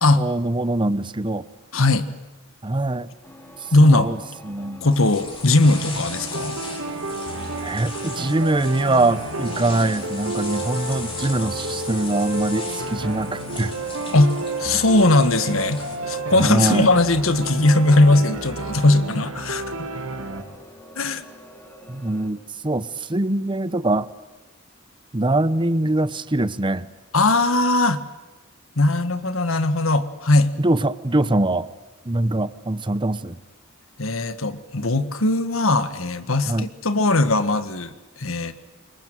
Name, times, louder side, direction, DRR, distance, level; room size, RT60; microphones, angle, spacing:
voice 1, 0.2-1.4 2.6-3.1 3.8-4.9 7.6-13.7 14.7-14.8 16.3-16.9 20.1-20.2 21.9-24.1 25.1-26.9 30.6-31.7 32.0-33.4 36.4-36.7, right 2 dB, 25° right, 15 dB, 0.9 m, -23 dB
voice 2, 1.7-2.1 3.7-4.1 4.8-6.6 14.1-14.3 14.6-15.8 16.1-19.9 20.9-21.2 27.1-28.0 28.7-30.5 34.0-38.5, left 2 dB, 75° left, 11 dB, 1.7 m, -19 dB
sound 1, 3.2-22.3, left 1 dB, 10° left, 4.0 m, -46 dB
sound 2, 4.9-16.0, left 3 dB, 25° left, 4.4 m, -38 dB
sound 3, 5.6-20.4, right 2 dB, 80° right, 3.2 m, -31 dB
26.5 x 22.5 x 9.2 m, 1.1 s
head